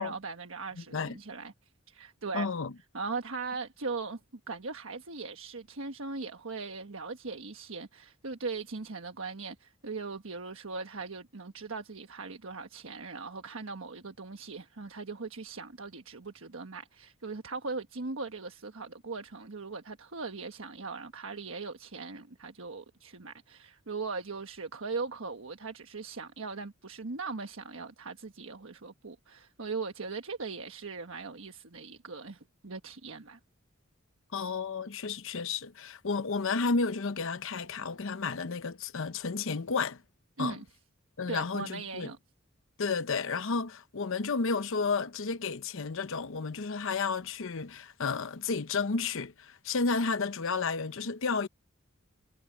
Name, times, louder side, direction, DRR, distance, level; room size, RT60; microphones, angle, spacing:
voice 1, 0.0-1.5 1.9-2.5 2.9-4.2 4.5-33.4 40.4-40.6 41.3-42.2, right 4 dB, 70° right, 1.4 m, -39 dB
voice 2, 0.8-1.1 2.3-2.7 34.3-40.0 40.4-40.6 41.2-42.1 42.8-51.5, left 4 dB, 65° left, 0.8 m, -32 dB
head